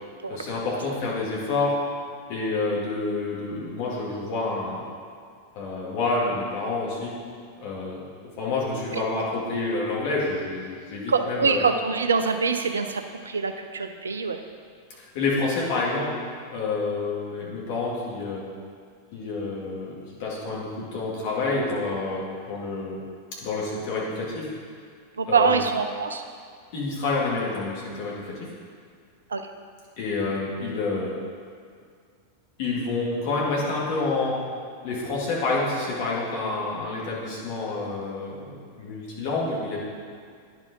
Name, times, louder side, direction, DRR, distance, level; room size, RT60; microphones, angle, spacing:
voice 1, 0.3-1.8 2.3-4.8 5.5-7.1 7.6-8.0 8.4-11.6 15.0-16.1 16.5-18.4 19.1-23.0 23.4-24.5 25.3-25.6 26.7-28.5 30.0-31.2 32.6-34.4 34.8-39.8, left 3 dB, 50° left, -5 dB, 2.0 m, -28 dB
voice 2, 11.1-14.4 25.2-26.2 29.3-29.4, right 5 dB, 70° right, 7 dB, 0.5 m, -24 dB
10.0 x 5.0 x 3.8 m, 2.2 s
figure-of-eight pair, 90°, 0 cm